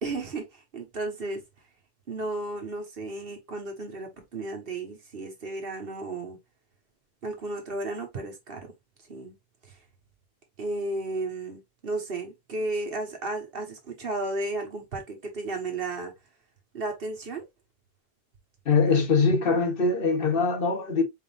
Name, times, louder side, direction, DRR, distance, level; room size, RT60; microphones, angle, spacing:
voice 1, 0.0-1.4 2.1-6.4 7.2-8.7 9.1-9.4 9.6-9.8 10.6-16.1 16.7-17.4, right 2 dB, 65° right, 1.4 m, -33 dB
voice 2, 18.7-21.0, left 4 dB, 65° left, 1.2 m, -22 dB
4.2 x 3.8 x 2.4 m
omnidirectional pair, 1.0 m